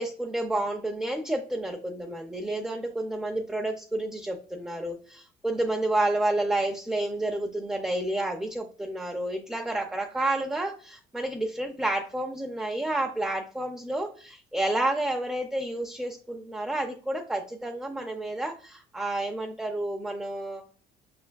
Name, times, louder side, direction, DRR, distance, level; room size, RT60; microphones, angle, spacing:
voice 1, 0.0-20.6, right 1 dB, 5° right, 1 dB, 0.5 m, -30 dB
5.4 x 3.4 x 2.2 m, 0.42 s
cardioid pair, 110°, 17 cm